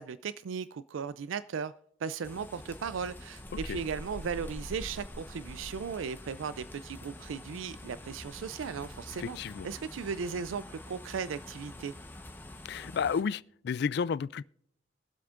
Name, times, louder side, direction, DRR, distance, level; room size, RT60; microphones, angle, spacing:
voice 1, 0.0-1.7 2.0-9.4 9.6-11.9, right 6 dB, 90° right, 0.4 m, -37 dB
sound 1, 2.2-13.2, left 1 dB, 10° left, 1.0 m, -45 dB
voice 2, 9.2-9.7 12.6-14.5, left 6 dB, 55° left, 0.3 m, -32 dB
23.0 x 7.9 x 2.5 m
head